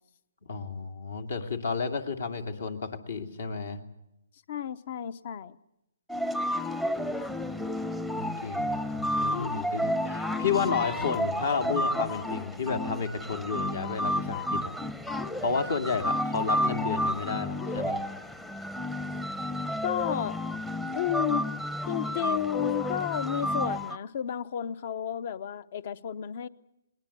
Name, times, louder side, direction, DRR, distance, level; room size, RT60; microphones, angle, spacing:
voice 1, 0.5-3.8 8.1-14.7 15.4-18.0, left 5 dB, 70° left, 6 dB, 2.4 m, -31 dB
voice 2, 4.5-5.6 19.8-20.4 20.9-21.5 21.9-26.5, left 11 dB, 50° left, 18 dB, 0.8 m, -32 dB
sound 1, 6.1-24.0, equal, 5° left, 0.7 m, -31 dB
21.5 x 19.5 x 8.4 m, 0.87 s
hypercardioid pair, 145°, 0 cm